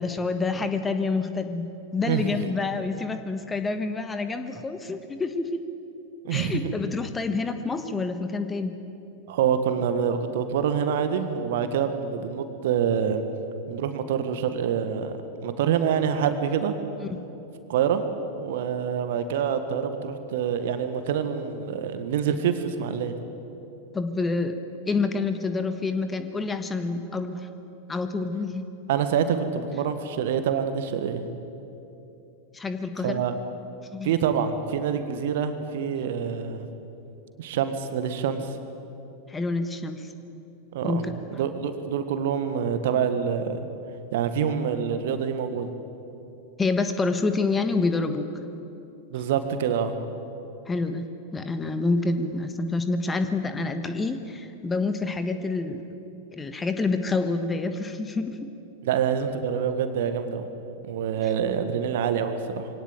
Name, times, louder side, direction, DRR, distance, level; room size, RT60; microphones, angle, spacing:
voice 1, 0.0-5.6 6.3-8.7 17.0-17.2 23.9-24.6 24.9-27.5 27.9-28.7 32.5-33.2 33.9-34.1 39.3-40.1 40.8-41.1 46.6-48.3 50.7-51.0 51.3-55.8 56.3-58.4, left 3 dB, 15° left, 9 dB, 1.4 m, -27 dB
voice 2, 2.0-2.5 6.2-6.7 9.3-13.2 13.7-15.1 15.4-16.8 17.7-18.0 18.3-23.2 28.9-31.2 33.0-33.3 34.0-36.7 37.4-38.6 40.7-41.0 41.3-43.7 44.1-45.7 49.1-49.9 58.8-60.5 60.8-62.7, right 7 dB, 55° right, 9 dB, 1.7 m, -26 dB
23.5 x 18.0 x 9.0 m, 2.9 s
figure-of-eight pair, 90°, 0 cm